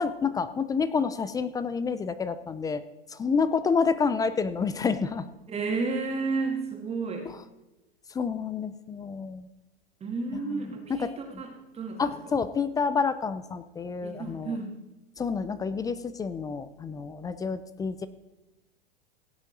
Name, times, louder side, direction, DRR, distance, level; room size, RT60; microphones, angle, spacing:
voice 1, 0.0-2.8 3.1-5.3 7.3-7.4 8.1-9.5 10.4-11.1 12.0-14.6 15.2-18.1, left 5 dB, 10° left, 14 dB, 0.4 m, -29 dB
voice 2, 5.5-7.3 10.0-12.1 14.0-14.7, right 4 dB, 20° right, 2 dB, 2.0 m, -32 dB
16.5 x 8.0 x 3.9 m, 1.0 s
hypercardioid pair, 105°, 30 cm